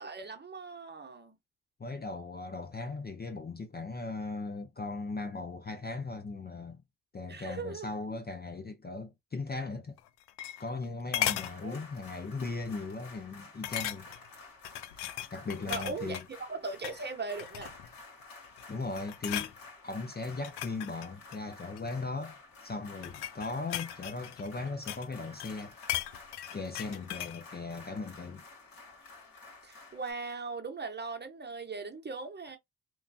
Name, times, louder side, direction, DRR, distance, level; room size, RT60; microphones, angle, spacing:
voice 1, 0.0-1.3 7.3-7.9 11.6-11.8 15.6-16.2 16.5-17.8 29.6-32.6, right 4 dB, 25° right, 0.9 m, -39 dB
voice 2, 1.8-6.8 7.1-10.0 10.6-14.1 15.3-16.2 18.7-19.5 19.8-25.8 26.5-28.4, left 3 dB, 25° left, 0.6 m, -38 dB
sound 1, 10.0-10.8 11.1-11.5 12.1-12.3 12.6-12.7 13.6-14.3 14.6-16.3 16.7-17.0 17.4-17.9 18.4-18.7 19.0-19.5 20.3-21.9 22.7-25.1 25.4-27.4 27.7-27.8, left 13 dB, 80° left, 0.5 m, -37 dB
sound 2, 11.2-30.1, left 3 dB, 60° left, 1.7 m, -52 dB
3.0 x 2.2 x 2.6 m
supercardioid pair, 60°, 39 cm